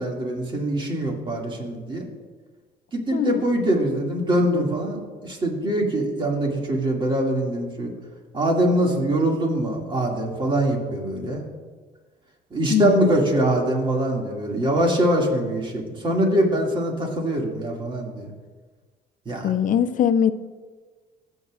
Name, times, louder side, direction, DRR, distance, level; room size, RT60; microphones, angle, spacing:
voice 1, 0.0-2.1 2.9-7.9 8.3-11.4 12.5-18.3 19.3-19.5, right 1 dB, 30° right, 0 dB, 2.2 m, -23 dB
voice 2, 3.1-3.5 12.7-13.2 19.4-20.3, left 9 dB, 50° left, 12 dB, 0.6 m, -21 dB
22.5 x 8.2 x 2.5 m, 1.4 s
cardioid pair, 110°, 17 cm